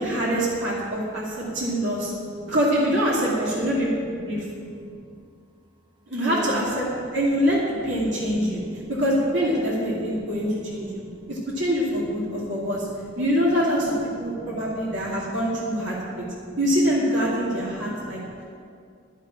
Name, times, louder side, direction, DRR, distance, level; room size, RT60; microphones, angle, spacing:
voice 1, 0.0-2.1 2.5-4.4 6.1-6.9 7.1-8.6 8.9-11.0 11.3-12.9 13.2-16.2 16.6-18.2, equal, 65° right, -6 dB, 2.5 m, -24 dB
voice 2, 3.3-3.7 4.4-5.1 6.2-6.6 8.6-8.8 10.0-10.4 10.8-11.4 12.2-12.9 14.2-15.0 16.0-16.1 16.4-16.6 17.6-18.4, right 1 dB, 25° right, 5 dB, 0.8 m, -40 dB
11.0 x 7.3 x 8.8 m, 2.4 s
head